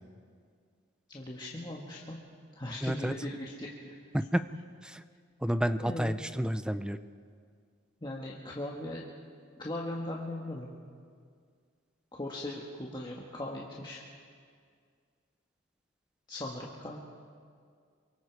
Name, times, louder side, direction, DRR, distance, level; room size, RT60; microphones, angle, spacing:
voice 1, 1.1-2.2 2.5-4.0 5.8-6.2 8.0-9.0 9.6-10.7 12.1-14.0 16.3-17.0, left 1 dB, 20° left, -3 dB, 1.6 m, -39 dB
voice 2, 2.8-3.1 4.1-4.4 4.8-5.0 5.4-7.0, equal, 5° right, 11 dB, 0.5 m, -30 dB
28.0 x 24.0 x 4.7 m, 2.1 s
head